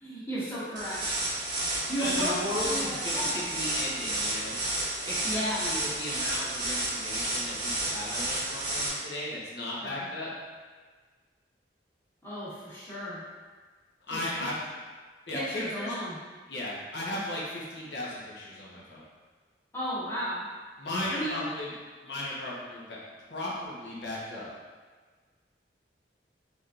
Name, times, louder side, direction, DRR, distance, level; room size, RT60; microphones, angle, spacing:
voice 1, 0.0-1.0 1.9-3.5 5.2-5.7 9.8-10.1 12.2-13.2 14.1-14.5 15.3-16.2 19.7-20.5 21.1-21.4, equal, 15° left, -11 dB, 1.4 m, -34 dB
sound 1, 0.8-8.9, right 1 dB, 25° right, 0.9 m, -31 dB
voice 2, 2.0-4.6 5.0-10.3 14.1-14.5 15.3-15.9 16.5-19.0 20.8-21.7 22.0-23.0 23.2-24.5, left 1 dB, 70° left, -6 dB, 1.1 m, -36 dB
4.1 x 3.6 x 2.5 m, 1.4 s
head